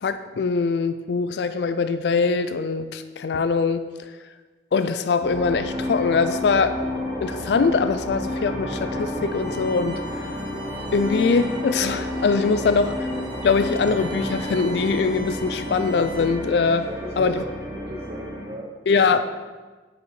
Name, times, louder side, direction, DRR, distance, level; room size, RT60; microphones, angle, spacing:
voice 1, 0.0-3.9 4.7-6.8 7.2-10.2 10.9-12.9 13.4-16.9 17.2-17.4 18.9-19.2, left 4 dB, 70° left, 11 dB, 0.4 m, -22 dB
sound 1, 5.2-18.5, left 1 dB, 10° right, 2.2 m, -30 dB
Bowed string instrument, 9.3-16.5, right 1 dB, 65° right, 1.8 m, -42 dB
voice 2, 16.9-19.2, right 1 dB, 35° right, -2 dB, 0.7 m, -37 dB
9.5 x 5.1 x 4.6 m, 1.3 s
head